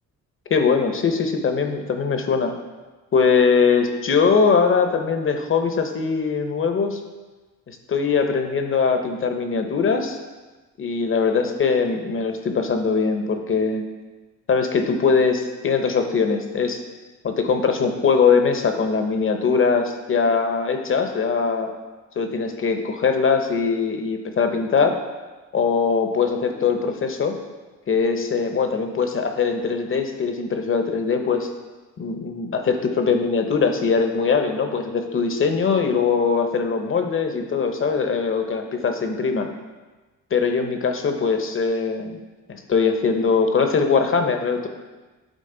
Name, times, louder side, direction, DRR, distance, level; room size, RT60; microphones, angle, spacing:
voice 1, 0.5-2.5 3.1-7.0 7.7-10.2 10.8-13.8 14.5-16.8 17.2-21.7 22.2-25.0 25.5-27.3 27.9-31.5 32.0-39.5 40.3-42.2 42.5-44.7, left 5 dB, 40° left, 6 dB, 0.8 m, -21 dB
9.1 x 3.8 x 3.8 m, 1.2 s
cardioid pair, 105°, 32 cm